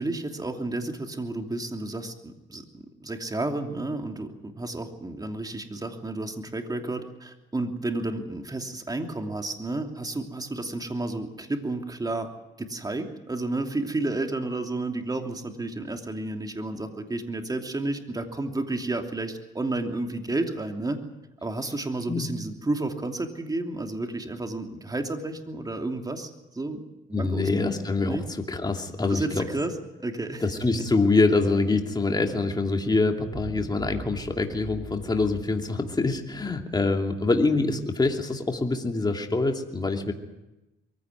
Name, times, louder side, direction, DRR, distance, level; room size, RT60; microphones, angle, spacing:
voice 1, 0.0-12.3 12.6-21.0 21.4-26.3 26.5-26.8 27.1-27.5 28.1-28.2 29.1-29.7 30.0-30.4 30.8-30.9, right 2 dB, 20° right, 4 dB, 2.9 m, -31 dB
voice 2, 27.1-28.2 28.5-29.5 30.4-40.1, left 3 dB, 20° left, 3 dB, 2.7 m, -25 dB
sound 1, 33.2-37.9, right 5 dB, 60° right, 2.1 m, -43 dB
23.0 x 15.5 x 9.2 m, 0.97 s
cardioid pair, 90°, 20 cm